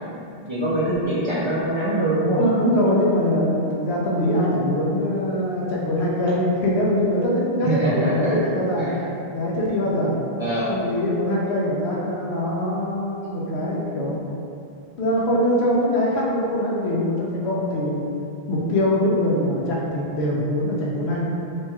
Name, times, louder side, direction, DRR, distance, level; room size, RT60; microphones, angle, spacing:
voice 1, 0.5-2.4 7.6-8.3 8.8-9.0 10.4-10.7, right 1 dB, 50° right, -10 dB, 0.3 m, -23 dB
voice 2, 2.4-8.9 9.3-10.2 10.7-14.3 15.0-18.0 18.5-21.2, left 1 dB, 90° left, -4 dB, 0.9 m, -23 dB
3.0 x 2.9 x 2.2 m, 2.6 s
omnidirectional pair, 1.0 m